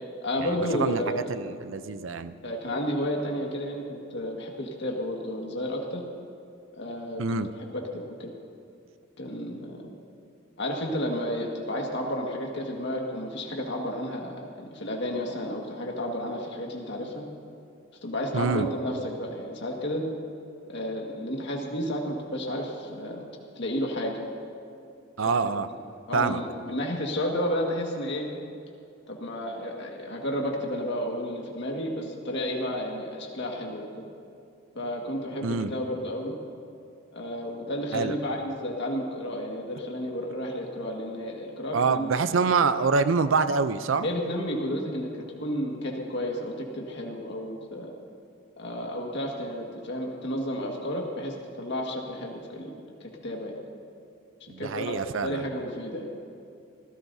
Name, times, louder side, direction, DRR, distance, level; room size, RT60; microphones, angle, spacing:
voice 1, 0.2-1.4 2.4-6.0 6.7-8.3 9.2-9.8 10.6-17.3 18.0-20.0 20.7-23.2 23.6-24.2 25.4-25.5 26.1-28.3 29.1-33.9 34.8-36.3 37.1-42.1 44.0-47.9 48.6-53.6 54.6-56.1, equal, 65° left, 0 dB, 1.8 m, -32 dB
voice 2, 1.3-2.3 7.2-7.5 18.3-18.7 25.2-25.7 26.1-26.4 35.4-35.7 37.9-38.1 41.7-44.1 54.5-55.4, right 4 dB, 80° right, 12 dB, 0.6 m, -25 dB
25.0 x 16.0 x 2.7 m, 2.5 s
head